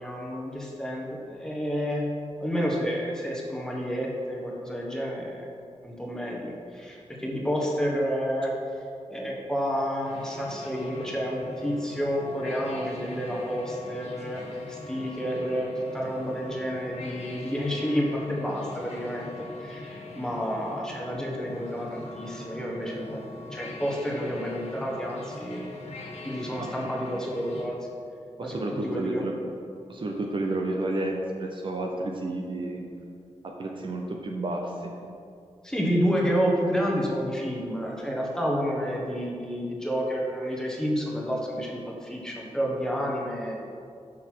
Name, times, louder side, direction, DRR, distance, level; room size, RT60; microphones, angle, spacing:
voice 1, 0.0-2.1 2.4-5.4 5.8-8.5 9.1-14.4 14.7-19.3 19.6-25.7 26.2-27.8 28.4-29.2 35.6-43.6, equal, 5° left, -3 dB, 1.2 m, -30 dB
sound 1, 10.0-27.6, left 2 dB, 65° left, 1.6 m, -41 dB
voice 2, 28.4-29.4 29.9-32.8 33.4-35.0, right 2 dB, 45° right, 1 dB, 0.7 m, -31 dB
6.5 x 6.0 x 6.2 m, 2.4 s
wide cardioid pair, 165°, 12 cm